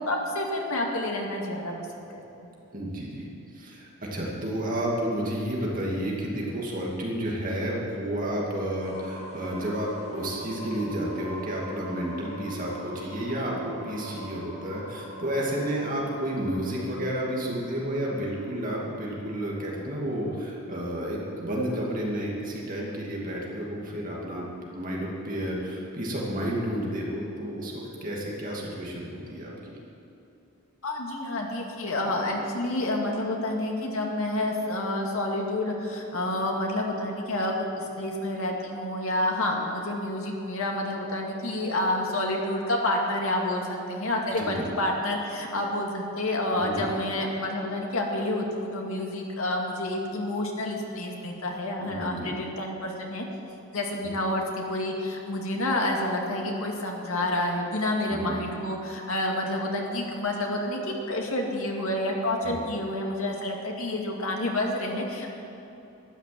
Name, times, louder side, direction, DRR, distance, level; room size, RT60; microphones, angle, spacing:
voice 1, 0.1-2.2 30.8-53.3 53.7-65.3, left 1 dB, 75° left, 0 dB, 2.2 m, -29 dB
voice 2, 2.7-3.3 3.5-29.5 44.4-44.7 46.5-46.9 51.8-52.3 58.1-58.4 62.4-62.6, right 1 dB, 35° right, -3 dB, 2.5 m, -31 dB
sound 1, 8.8-20.6, equal, 30° left, 2.0 m, -44 dB
13.0 x 10.5 x 7.7 m, 2.9 s
head